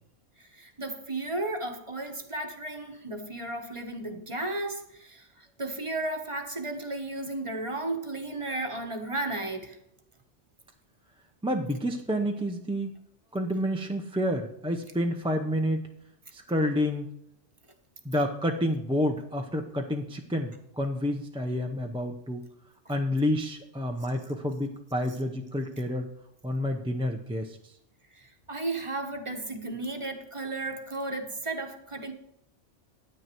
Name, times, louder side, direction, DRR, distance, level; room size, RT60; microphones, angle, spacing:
voice 1, 0.4-9.8 28.1-32.1, right 2 dB, 25° right, 5 dB, 1.2 m, -34 dB
voice 2, 11.4-12.9 13.3-15.9 16.3-17.1 18.0-22.4 22.9-26.1 26.4-27.6, equal, 5° right, 3 dB, 0.5 m, -29 dB
9.6 x 9.4 x 4.5 m, 0.75 s
omnidirectional pair, 1.3 m